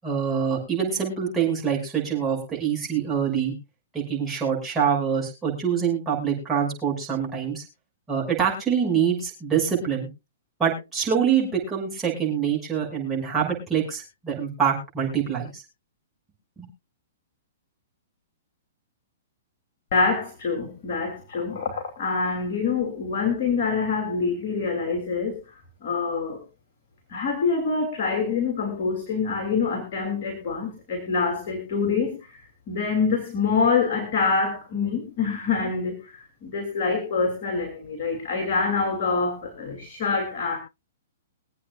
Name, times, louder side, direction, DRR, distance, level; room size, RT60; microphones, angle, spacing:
voice 1, 0.0-3.5 3.9-7.6 8.1-10.1 10.6-15.6 16.6-16.7, right 7 dB, 10° right, -3 dB, 6.4 m, -25 dB
voice 2, 19.9-25.4 25.8-26.4 27.1-40.6, left 5 dB, 50° left, 3 dB, 3.1 m, -26 dB
23.5 x 8.5 x 2.5 m, 0.26 s
hypercardioid pair, 125°, 0 cm